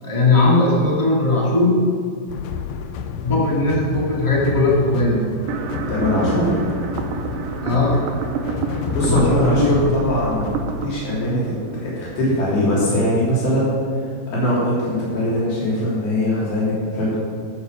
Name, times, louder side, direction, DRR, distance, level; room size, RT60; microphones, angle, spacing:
voice 1, 0.0-1.8 3.2-5.2 7.6-8.0 9.0-9.9, left 2 dB, 35° left, -4 dB, 0.4 m, -18 dB
sound 1, 2.3-10.9, left 7 dB, 85° left, 2.0 m, -30 dB
sound 2, 5.5-12.5, right 6 dB, 75° right, 2.5 m, -29 dB
voice 2, 5.9-6.6 8.9-11.5 11.8-13.8 14.3-17.2, left 1 dB, 70° left, -8 dB, 5.2 m, -21 dB
14.0 x 7.1 x 5.2 m, 2.2 s
omnidirectional pair, 4.5 m